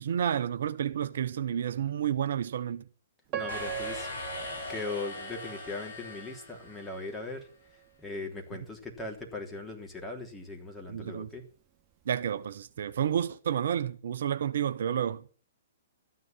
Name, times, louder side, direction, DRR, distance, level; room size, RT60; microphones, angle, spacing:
voice 1, 0.0-2.8 10.9-11.3 12.1-15.2, right 9 dB, 65° right, 0.8 m, -30 dB
Piano, 3.3-6.3 6.9-7.0 7.7-7.9, right 11 dB, 30° right, 1.2 m, -40 dB
voice 2, 3.4-4.1 4.3-7.5 8.0-11.4, left 3 dB, 10° left, 3.3 m, -39 dB
sound 1, 3.5-7.2, left 2 dB, 80° left, 6.0 m, -40 dB
13.5 x 9.7 x 5.9 m
figure-of-eight pair, 120°, 0 cm